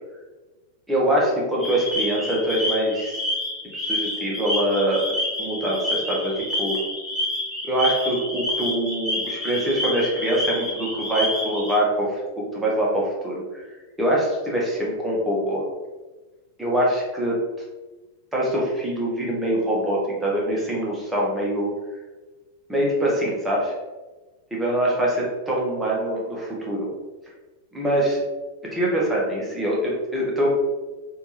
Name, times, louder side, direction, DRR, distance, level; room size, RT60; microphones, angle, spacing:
voice 1, 0.9-3.2 3.7-5.1 5.4-6.8 7.6-13.6 14.0-15.6 16.6-17.4 18.3-21.7 22.7-23.7 24.5-26.9 27.7-28.2 28.7-30.5, right 1 dB, 5° right, -5 dB, 1.1 m, -24 dB
sound 1, 1.6-11.8, left 1 dB, 20° left, 1.2 m, -28 dB
3.3 x 2.7 x 3.1 m, 1.2 s
figure-of-eight pair, 90°, 0 cm